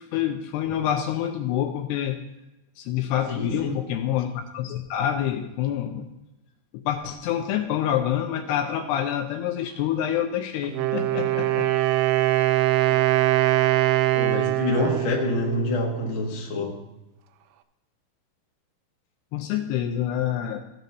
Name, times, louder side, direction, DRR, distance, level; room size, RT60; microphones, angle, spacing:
voice 1, 0.0-2.2 2.8-6.1 6.7-11.7 19.3-20.6, left 10 dB, 80° left, 5 dB, 2.5 m, -27 dB
voice 2, 3.3-3.7 12.9-13.0 14.1-16.8, left 2 dB, 55° left, -2 dB, 1.4 m, -27 dB
Wind instrument woodwind instrument, 10.6-16.4, right 16 dB, 85° right, 2.3 m, -23 dB
14.0 x 9.1 x 2.7 m, 0.93 s
omnidirectional pair, 5.0 m